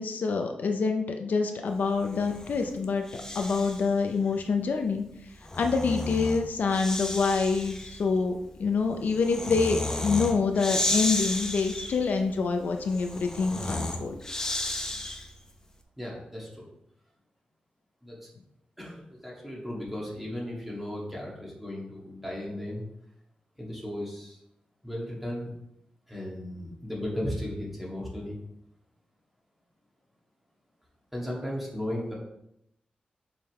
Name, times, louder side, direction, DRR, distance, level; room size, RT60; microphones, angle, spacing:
voice 1, 0.0-3.0 3.3-5.0 5.6-14.1, left 4 dB, 75° left, 4 dB, 0.7 m, -26 dB
Breathing, 2.0-3.9 5.2-15.5, left 1 dB, 20° left, 0.8 m, -34 dB
voice 2, 16.0-16.5 18.0-18.2 18.8-22.8 23.6-24.4 24.8-25.5 26.1-28.4 31.1-32.1, left 1 dB, 5° right, -4 dB, 2.1 m, -35 dB
6.9 x 5.3 x 3.2 m, 0.80 s
wide cardioid pair, 120°, 3 cm